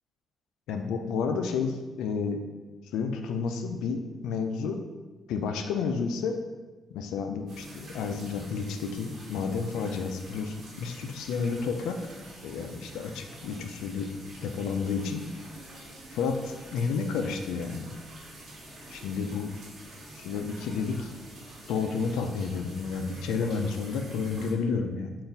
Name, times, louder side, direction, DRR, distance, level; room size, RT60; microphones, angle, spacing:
voice 1, 0.7-2.4 2.9-4.8 5.3-6.4 6.9-12.0 12.4-14.1 14.4-15.2 16.1-17.9 18.9-19.5 20.1-21.1 21.7-25.1, left 5 dB, 90° left, 6 dB, 0.3 m, -31 dB
sound 1, 7.5-24.5, right 1 dB, 65° right, 1.3 m, -47 dB
3.8 x 2.4 x 3.9 m, 1.2 s
cardioid pair, 90°, 0 cm